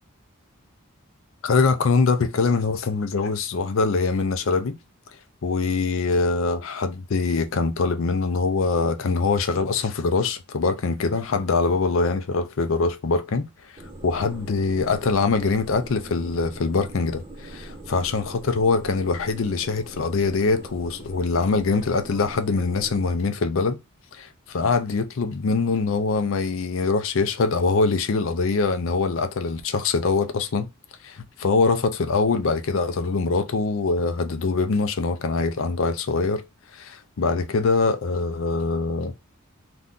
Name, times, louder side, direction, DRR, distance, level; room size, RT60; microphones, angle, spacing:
voice 1, 1.4-4.8 5.4-13.5 14.0-23.8 24.1-30.7 31.0-36.4 36.7-39.1, left 4 dB, 65° left, 0.5 m, -23 dB
sound 1, 13.8-23.1, right 2 dB, 25° right, 0.4 m, -41 dB
2.6 x 2.2 x 3.6 m
head